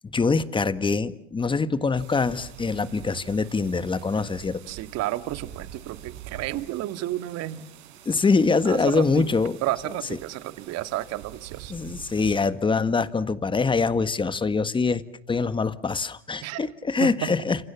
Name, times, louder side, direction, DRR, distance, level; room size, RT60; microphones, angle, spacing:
voice 1, 0.1-4.6 8.0-9.6 11.7-15.0 15.3-17.6, left 4 dB, 15° left, 14 dB, 1.6 m, -24 dB
sound 1, 1.9-12.5, right 11 dB, 70° right, 7.2 m, -45 dB
voice 2, 4.7-7.6 8.6-9.3 9.6-11.7 16.4-16.7 17.0-17.3, right 14 dB, 45° right, 12 dB, 2.0 m, -31 dB
29.5 x 27.5 x 7.3 m, 0.67 s
hypercardioid pair, 105°, 34 cm